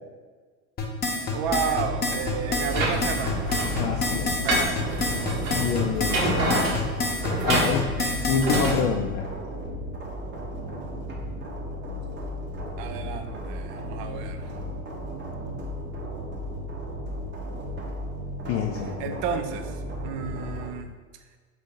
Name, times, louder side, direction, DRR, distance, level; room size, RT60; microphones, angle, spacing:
sound 1, 0.8-8.7, left 3 dB, 20° left, 0.8 m, -28 dB
voice 1, 1.3-3.5 4.4-5.0 7.4-8.3 12.8-14.5 19.0-19.7 20.0-20.9, right 7 dB, 45° right, 7 dB, 0.5 m, -32 dB
sound 2, 1.4-20.7, equal, 25° right, 0.8 m, -35 dB
sound 3, 2.6-8.8, right 1 dB, 70° right, 1.3 m, -28 dB
voice 2, 3.8-4.3 5.5-6.2 7.4-7.9 8.3-9.3 18.5-19.2, left 7 dB, 40° left, 0 dB, 0.4 m, -26 dB
4.0 x 3.3 x 3.7 m, 1.4 s
hypercardioid pair, 100°, 43 cm